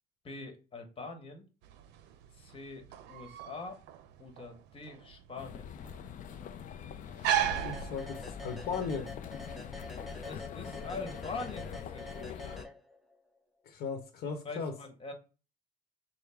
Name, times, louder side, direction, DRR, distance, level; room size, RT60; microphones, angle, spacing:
voice 1, 0.2-1.4 2.3-3.8 4.2-5.7 9.9-12.6 14.4-15.1, left 3 dB, 35° left, 1.3 m, -44 dB
sound 1, 1.6-8.6, right 10 dB, 90° right, 0.5 m, -36 dB
sound 2, 5.4-12.7, left 8 dB, 50° left, 0.5 m, -44 dB
sound 3, 7.4-13.2, left 1 dB, ahead, 0.6 m, -47 dB
voice 2, 7.6-9.1 13.6-14.7, left 5 dB, 70° left, 1.0 m, -37 dB
6.4 x 2.1 x 3.4 m
cardioid pair, 110°, 17 cm